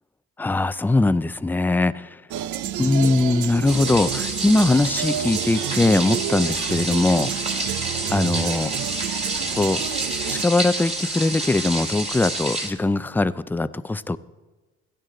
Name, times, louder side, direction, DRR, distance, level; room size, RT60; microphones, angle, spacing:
voice 1, 0.4-2.2 2.8-7.3 8.1-8.7 9.5-9.8 10.3-14.2, left 2 dB, 5° left, 15 dB, 0.3 m, -21 dB
sound 1, 2.3-10.4, right 10 dB, 75° right, 0.6 m, -29 dB
sound 2, 3.7-12.7, right 2 dB, 20° right, 2.3 m, -29 dB
16.5 x 12.5 x 3.8 m, 1.2 s
cardioid pair, 90°, 30 cm